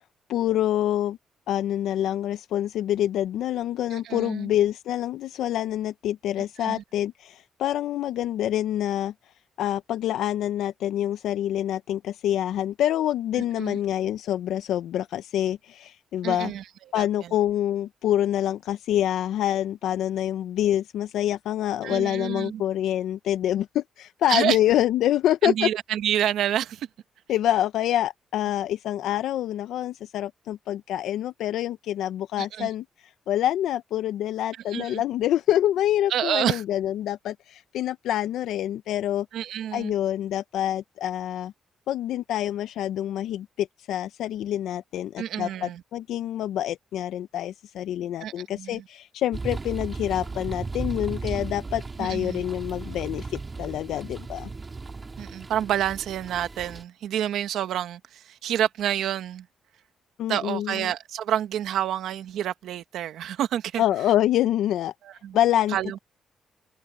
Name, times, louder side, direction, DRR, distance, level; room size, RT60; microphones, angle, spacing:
voice 1, 0.3-1.2 1.5-9.1 9.6-16.5 16.9-25.7 27.3-32.8 33.3-39.3 39.7-41.5 41.9-54.5 60.2-60.9 63.8-64.9 65.3-66.0, left 12 dB, 85° left, 0.5 m, -26 dB
voice 2, 3.9-4.5 6.6-6.8 13.6-13.8 16.2-16.6 16.9-17.3 21.8-22.6 24.3-24.6 25.4-26.9 32.4-32.7 34.7-35.0 36.1-36.6 39.3-39.9 45.2-45.8 48.2-48.8 52.0-52.4 55.2-59.5 60.3-63.8 65.0-65.4 65.7-66.0, right 11 dB, 75° right, 1.3 m, -28 dB
sound 1, 49.3-56.8, right 3 dB, 20° right, 3.4 m, -35 dB
cardioid pair, 180°, 0 cm